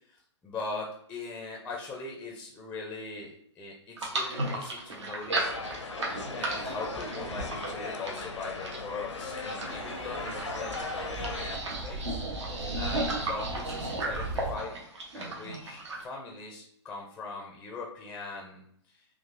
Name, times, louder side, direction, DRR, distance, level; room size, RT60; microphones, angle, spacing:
voice 1, 0.1-5.5 6.3-12.2 12.7-14.8 15.1-19.1, left 3 dB, 10° left, 0 dB, 0.4 m, -41 dB
sound 1, 4.0-16.0, right 2 dB, 75° right, 1.0 m, -35 dB
sound 2, 5.4-11.6, left 3 dB, 85° left, 0.5 m, -38 dB
sound 3, 9.6-14.6, right 2 dB, 50° right, 0.5 m, -39 dB
3.7 x 2.4 x 2.5 m, 0.66 s
figure-of-eight pair, 120°, 15 cm